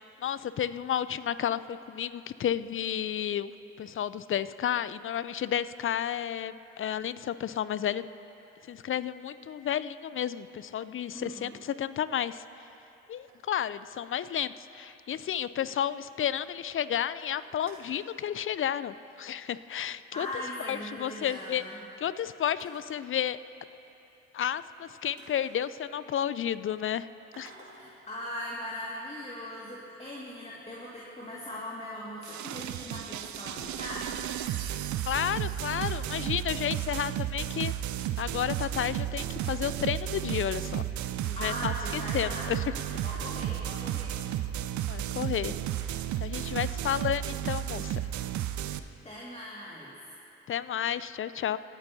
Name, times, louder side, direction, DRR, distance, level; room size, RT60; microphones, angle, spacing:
voice 1, 0.2-3.5 3.8-8.1 8.7-12.4 13.1-20.3 20.7-21.6 22.0-23.4 24.3-27.1 27.4-27.5 35.1-37.7 38.2-40.9 41.2-42.6 44.9-45.9 46.2-48.0 50.5-51.6, left 9 dB, 40° left, 16 dB, 0.5 m, -32 dB
voice 2, 11.1-11.6 20.1-21.8 27.7-34.2 41.0-42.5 43.0-44.3 48.7-50.0, left 1 dB, 20° left, -5 dB, 2.1 m, -40 dB
sound 1, 12.9-14.0 14.4-14.5 14.7-14.8 15.2-15.3 15.6-15.7 16.0-16.4 16.8-16.9 17.2-18.0 19.1-19.3 19.6-19.7 20.4-20.5 20.8-21.8 22.4-22.9 24.6-24.7 25.2-26.2 27.3-28.0, right 3 dB, 75° right, 1.8 m, -54 dB
sound 2, 32.2-48.8, right 12 dB, 60° right, 0.6 m, -33 dB
26.5 x 9.0 x 2.8 m, 2.9 s
hypercardioid pair, 45°, 34 cm